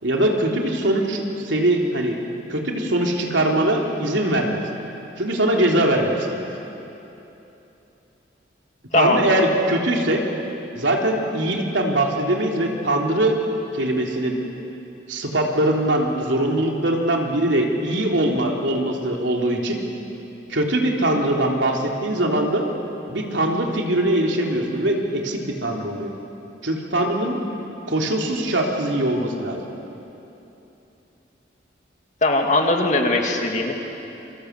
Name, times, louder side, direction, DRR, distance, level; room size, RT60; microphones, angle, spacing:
voice 1, 0.0-2.2 2.5-4.6 5.2-6.5 8.9-10.2 10.7-13.4 13.7-14.4 15.1-19.8 20.5-22.7 23.1-26.1 26.6-27.4 27.9-29.6, right 1 dB, 90° right, 1 dB, 3.5 m, -22 dB
voice 2, 32.2-33.7, left 2 dB, 40° left, 2 dB, 2.6 m, -20 dB
29.0 x 24.5 x 8.3 m, 3.0 s
head